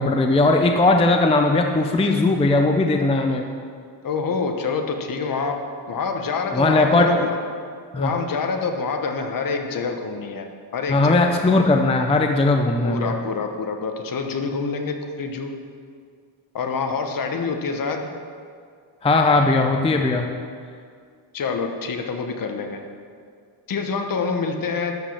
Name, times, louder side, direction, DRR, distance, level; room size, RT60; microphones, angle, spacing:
voice 1, 0.0-3.4 6.5-7.3 7.9-8.1 10.9-13.1 19.0-20.4, left 2 dB, 15° left, 3 dB, 0.5 m, -18 dB
voice 2, 4.0-5.6 5.9-7.4 8.0-11.3 12.8-15.5 16.5-18.1 21.3-22.8 23.7-25.0, left 4 dB, 45° left, 5 dB, 1.1 m, -26 dB
12.0 x 5.1 x 7.1 m, 2.1 s
cardioid pair, 150°, 45 cm